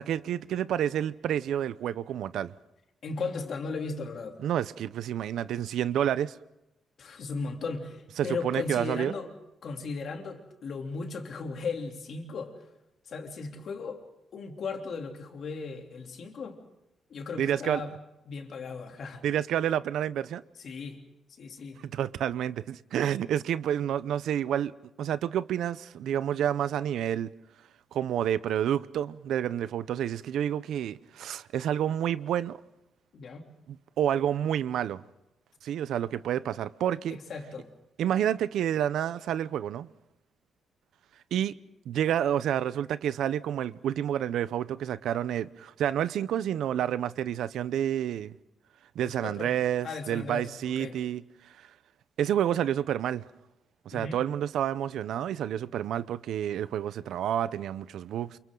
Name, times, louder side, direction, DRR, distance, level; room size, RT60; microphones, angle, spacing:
voice 1, 0.0-2.5 4.4-6.4 8.2-9.1 17.4-17.8 19.2-20.4 21.8-24.7 25.0-27.3 27.9-32.6 34.0-35.0 35.6-37.2 38.0-39.9 41.3-41.5 41.9-48.3 48.9-51.2 52.2-53.2 53.9-58.4, right 10 dB, 75° right, 0.7 m, -29 dB
voice 2, 3.0-4.4 7.0-9.3 9.6-12.6 13.1-14.0 14.3-16.6 17.1-17.9 18.3-19.2 20.6-21.0 21.4-21.8 33.1-33.4 37.1-37.7 49.0-49.5 49.8-51.0 53.9-54.2, left 4 dB, 45° left, 3.2 m, -36 dB
29.0 x 28.5 x 3.9 m
cardioid pair, 175°, 0 cm